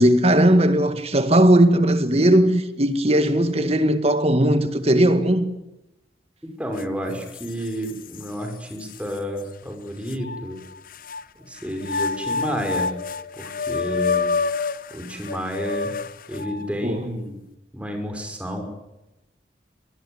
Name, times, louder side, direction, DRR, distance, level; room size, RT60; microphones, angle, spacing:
voice 1, 0.0-5.5 16.8-17.1, right 1 dB, 35° right, 2.0 m, -18 dB
voice 2, 6.6-10.6 11.5-12.9 13.4-14.3 14.9-15.9 16.3-17.4 17.7-18.6, equal, 5° right, 5.8 m, -30 dB
sound 1, 6.8-6.9 7.3-8.3 8.9-9.0 10.1-11.2 11.8-16.7, left 4 dB, 55° left, 0.8 m, -28 dB
23.5 x 20.0 x 8.1 m
head